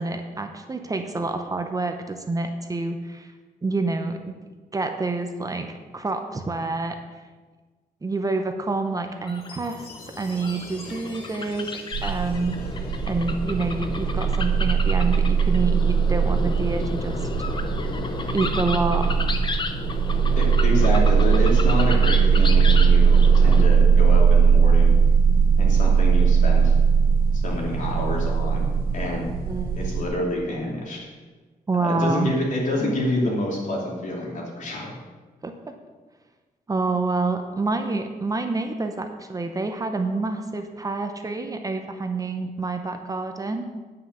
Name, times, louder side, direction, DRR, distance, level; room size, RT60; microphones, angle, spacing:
voice 1, 0.0-3.3 3.6-4.3 4.7-5.7 5.9-7.0 8.0-9.8 10.2-11.7 12.0-12.8 13.1-17.5 18.3-19.2 29.5-29.8 31.7-32.3 35.4-35.7 36.7-43.7, right 3 dB, 25° right, 5 dB, 0.7 m, -27 dB
sound 1, 9.1-23.7, left 3 dB, 30° left, 0.8 m, -33 dB
Chime, 9.3-13.9, left 3 dB, 85° left, 3.0 m, -47 dB
sound 2, 11.9-30.1, right 6 dB, 85° right, 1.4 m, -19 dB
voice 2, 20.4-24.9 25.6-26.8 27.3-28.6 28.9-29.3 29.7-31.1 31.8-34.9, left 1 dB, 55° left, -2 dB, 2.9 m, -27 dB
9.7 x 5.8 x 6.7 m, 1.3 s
cardioid pair, 120°, 15 cm